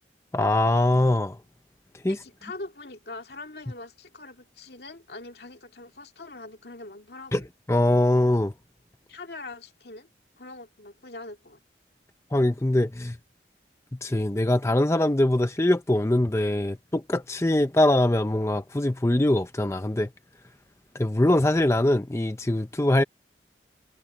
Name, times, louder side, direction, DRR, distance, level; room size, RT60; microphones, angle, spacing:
voice 1, 0.3-1.4 2.0-2.2 7.3-7.4 7.7-8.5 12.3-13.2 14.0-20.1 20.9-23.0, left 1 dB, 15° left, 0.5 m, -22 dB
voice 2, 2.1-7.5 9.1-10.1 10.4-11.6, left 2 dB, 65° left, 2.2 m, -42 dB
head